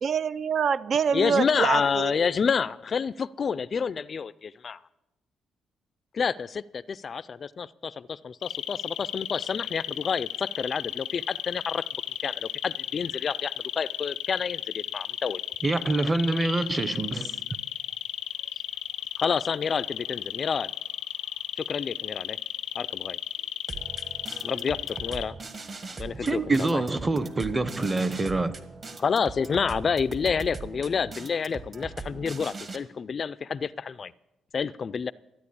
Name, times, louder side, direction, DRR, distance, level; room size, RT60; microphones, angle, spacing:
voice 1, 0.0-2.1, right 7 dB, 55° right, 0.4 m, -25 dB
voice 2, 1.1-4.8 6.1-11.8 12.2-15.4 19.2-20.7 21.6-22.4 22.8-23.2 24.4-25.3 26.0-26.8 29.0-34.1 34.5-35.1, left 6 dB, 45° left, 0.4 m, -29 dB
sound 1, 8.4-25.3, left 12 dB, 85° left, 0.6 m, -34 dB
voice 3, 15.6-17.4 26.2-28.6, right 2 dB, 20° right, 0.8 m, -26 dB
sound 2, 23.7-32.8, right 3 dB, 40° right, 1.5 m, -40 dB
13.0 x 9.2 x 8.5 m
cardioid pair, 90°, 0 cm